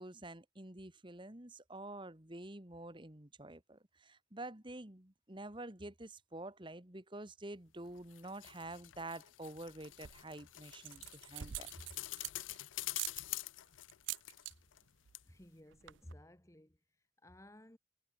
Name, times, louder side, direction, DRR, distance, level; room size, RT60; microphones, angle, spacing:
voice 1, 0.0-11.7, right 2 dB, 25° right, 2.0 m, -48 dB
sound 1, 7.9-14.9 15.1-15.2, left 17 dB, 90° left, 0.5 m, -47 dB
sound 2, 9.8-10.3 10.8-12.6 12.9-13.2 13.9-14.5 14.8-15.1 15.4-15.5 15.7-16.1, right 13 dB, 80° right, 0.6 m, -44 dB
voice 2, 15.3-16.8 17.2-17.8, left 1 dB, 15° left, 1.8 m, -56 dB
head